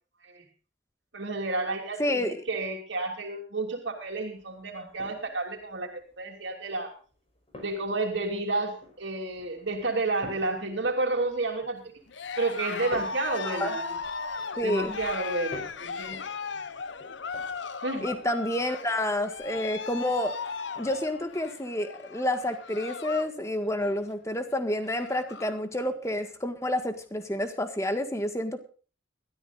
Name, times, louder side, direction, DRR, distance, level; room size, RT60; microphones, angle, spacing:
voice 1, 1.1-5.9 6.2-6.9 7.6-11.8 12.4-14.0 14.6-16.2 17.8-18.1, right 2 dB, 70° right, 2 dB, 3.0 m, -31 dB
voice 2, 2.0-2.4 13.4-13.7 14.6-15.0 18.0-20.3 20.8-28.6, left 1 dB, 15° left, 8 dB, 1.7 m, -29 dB
sound 1, 4.0-21.4, left 1 dB, 30° left, 5.3 m, -50 dB
Cheering, 12.1-23.4 23.7-24.1 24.5-24.6 24.8-25.6, left 5 dB, 70° left, 0.8 m, -37 dB
22.0 x 13.5 x 2.5 m, 0.37 s
head